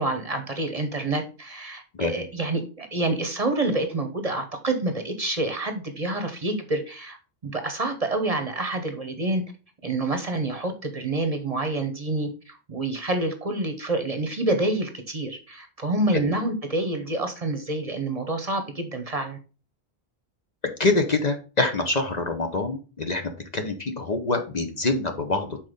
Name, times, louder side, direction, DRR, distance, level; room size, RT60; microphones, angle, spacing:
voice 1, 0.0-7.2 7.4-9.4 9.8-19.4, right 2 dB, 35° right, 6 dB, 0.9 m, -27 dB
voice 2, 20.8-25.6, left 3 dB, 40° left, 5 dB, 0.9 m, -25 dB
6.1 x 4.2 x 5.0 m, 0.34 s
omnidirectional pair, 1.1 m